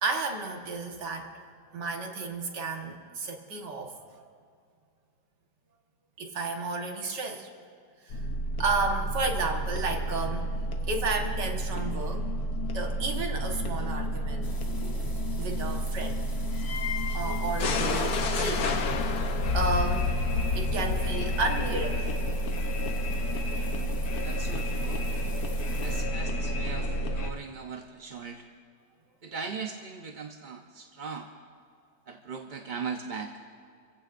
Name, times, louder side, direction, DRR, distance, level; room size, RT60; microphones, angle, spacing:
voice 1, 0.0-1.3 1.7-4.0 6.2-7.5 8.1-8.2 8.6-10.5 10.9-12.2 12.7-14.5 15.4-16.3 17.1-19.3 19.5-20.1 20.6-22.1, right 3 dB, 85° right, 2 dB, 2.1 m, -32 dB
sound 1, 8.1-27.3, equal, 65° left, 1.4 m, -29 dB
sound 2, 14.4-26.0, left 1 dB, 15° left, 1.1 m, -48 dB
voice 2, 23.6-24.0 24.2-25.1 25.8-28.4 29.2-31.3 32.1-33.3, right 5 dB, 45° right, 3 dB, 0.6 m, -39 dB
27.0 x 16.0 x 2.6 m, 2.2 s
omnidirectional pair, 1.8 m